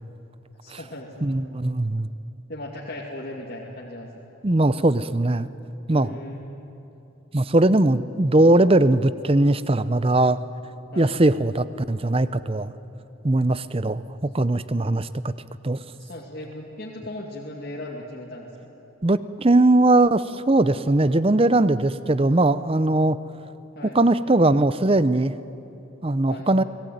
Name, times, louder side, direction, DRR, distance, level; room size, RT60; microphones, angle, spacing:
voice 1, 0.6-1.4 2.5-4.3 5.9-6.4 10.9-11.2 15.9-18.5 23.8-24.0 26.3-26.5, left 1 dB, 45° left, -3 dB, 2.4 m, -37 dB
voice 2, 1.2-2.1 4.4-5.5 5.9-6.2 7.3-10.4 11.0-12.7 13.2-15.3 15.6-15.8 19.0-23.2 23.9-25.3 26.0-26.6, right 2 dB, 25° right, 15 dB, 0.6 m, -20 dB
29.5 x 19.5 x 9.4 m, 3.0 s
head